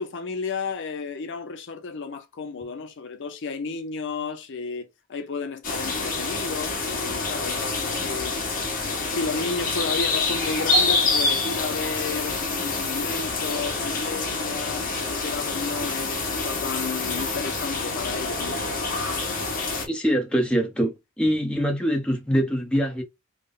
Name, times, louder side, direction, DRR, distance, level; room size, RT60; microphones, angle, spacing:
voice 1, 0.0-8.4 8.7-18.7, left 4 dB, 55° left, 0.6 m, -33 dB
sound 1, 5.6-19.8, left 3 dB, 40° left, 1.3 m, -27 dB
voice 2, 19.9-23.0, equal, 5° left, 0.7 m, -24 dB
3.6 x 2.1 x 3.7 m
head